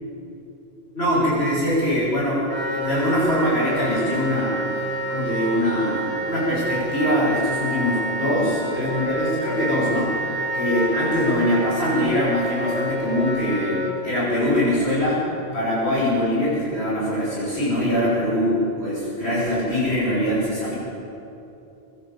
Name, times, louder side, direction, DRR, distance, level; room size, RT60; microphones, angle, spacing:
voice 1, 0.9-4.6 5.1-10.2 10.5-15.2 15.5-20.7, left 1 dB, 65° left, -11 dB, 7.1 m, -23 dB
Wind instrument woodwind instrument, 2.5-13.9, right 2 dB, 10° right, 3.1 m, -28 dB
24.5 x 12.0 x 9.4 m, 2.9 s
omnidirectional pair, 1.2 m